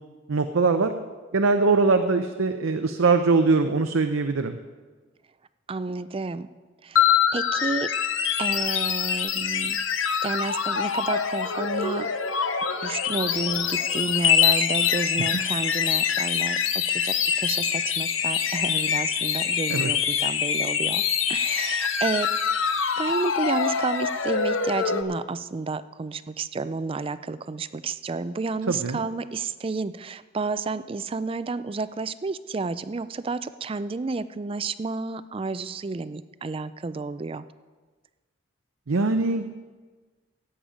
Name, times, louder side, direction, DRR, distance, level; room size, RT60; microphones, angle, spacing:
voice 1, 0.3-0.9 1.3-4.6 15.3-15.4 19.7-19.9 28.7-29.0 38.9-39.5, right 4 dB, 85° right, 7 dB, 0.6 m, -22 dB
voice 2, 5.7-6.5 6.8-7.9 8.4-9.8 10.2-12.1 12.8-21.0 21.3-22.3 23.0-37.4, right 3 dB, 25° right, 14 dB, 0.4 m, -31 dB
sound 1, 7.0-25.0, left 7 dB, 75° left, 0.8 m, -25 dB
15.5 x 8.6 x 5.0 m, 1.4 s
head